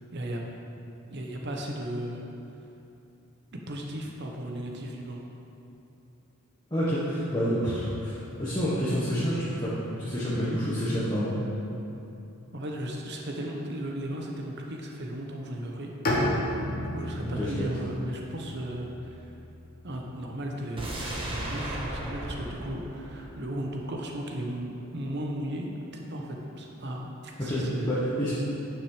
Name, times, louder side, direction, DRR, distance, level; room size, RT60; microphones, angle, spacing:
voice 1, 1.1-2.2 3.5-5.2 12.5-15.9 16.5-19.3 19.8-28.0, right 1 dB, 50° right, 0 dB, 1.1 m, -36 dB
voice 2, 6.7-11.4 17.2-17.6 27.4-28.3, equal, 20° left, -9 dB, 1.4 m, -28 dB
Bowed string instrument, 16.0-20.0, left 1 dB, 40° left, 1.5 m, -32 dB
sound 1, 20.8-23.9 24.2-24.3, right 1 dB, 25° right, 1.4 m, -36 dB
10.0 x 6.0 x 5.0 m, 2.9 s
head